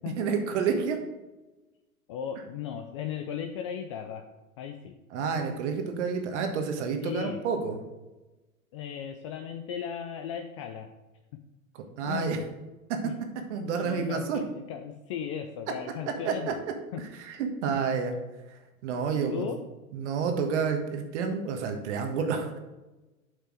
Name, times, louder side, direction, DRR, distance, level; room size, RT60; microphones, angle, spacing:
voice 1, 0.2-1.0 5.1-7.8 12.0-12.4 12.9-13.0 13.5-14.4 16.2-16.5 17.0-18.2 18.8-19.4 19.9-22.6, right 5 dB, 50° right, 5 dB, 1.5 m, -29 dB
voice 2, 2.1-4.2 4.6-4.9 7.0-7.4 8.7-10.9 12.1-12.4 13.0-13.1 13.8-16.6 16.9-17.0 17.7-17.8 19.1-19.7, left 8 dB, 25° left, 6 dB, 0.3 m, -36 dB
7.7 x 5.5 x 4.9 m, 1.1 s
figure-of-eight pair, 105°, 43 cm